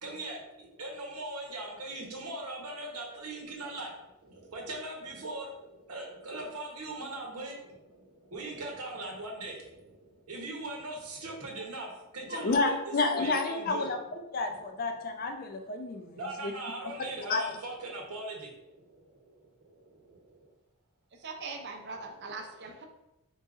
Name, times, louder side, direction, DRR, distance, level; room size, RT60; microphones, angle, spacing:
voice 1, 0.0-13.9 14.5-14.8 16.1-20.5, right 2 dB, 90° right, 0 dB, 1.0 m, -40 dB
voice 2, 12.3-16.5 17.3-17.4, left 3 dB, 40° left, 5 dB, 0.4 m, -30 dB
voice 3, 21.2-22.9, right 4 dB, 50° right, 4 dB, 0.5 m, -41 dB
3.9 x 3.8 x 2.4 m, 0.93 s
head